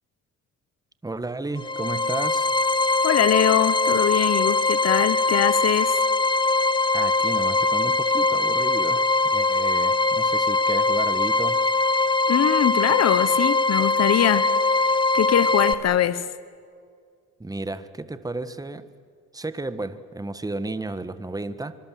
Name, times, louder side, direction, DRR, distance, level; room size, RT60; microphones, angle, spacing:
voice 1, 1.0-2.5 6.9-11.6 17.4-18.8 19.3-21.8, right 2 dB, 10° right, 1.5 m, -33 dB
sound 1, 1.6-15.7, left 3 dB, 15° left, 1.1 m, -22 dB
voice 2, 3.0-6.0 12.3-14.5 14.8-16.3, left 10 dB, 60° left, 1.2 m, -22 dB
25.5 x 24.5 x 7.7 m
cardioid pair, 90°, 30 cm